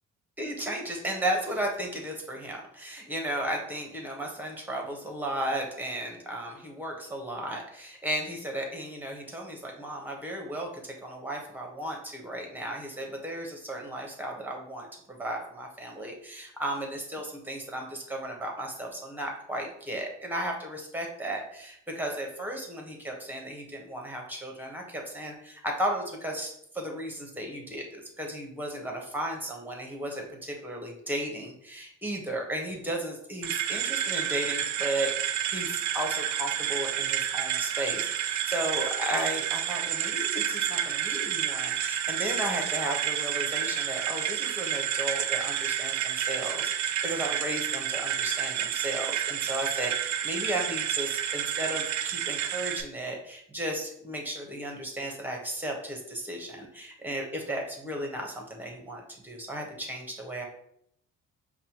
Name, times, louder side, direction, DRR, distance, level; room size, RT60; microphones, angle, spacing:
voice 1, 0.4-60.5, right 1 dB, 5° right, 1 dB, 1.0 m, -35 dB
sound 1, 33.4-52.8, right 10 dB, 70° right, 0.4 m, -30 dB
5.3 x 2.3 x 2.9 m, 0.70 s
cardioid pair, 90°, 30 cm